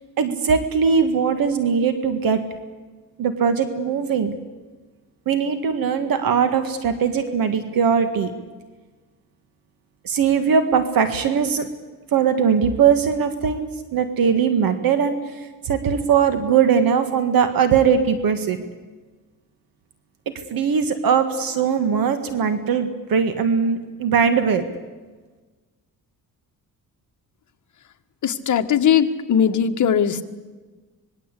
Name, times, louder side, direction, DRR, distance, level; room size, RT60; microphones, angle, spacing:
voice 1, 0.2-2.4 3.2-4.3 5.3-8.3 10.0-11.7 12.1-18.6 20.3-24.6, right 6 dB, 65° right, 9 dB, 1.8 m, -20 dB
voice 2, 28.2-30.2, left 8 dB, 50° left, 7 dB, 1.5 m, -19 dB
25.5 x 20.5 x 8.4 m, 1.3 s
cardioid pair, 130°, 37 cm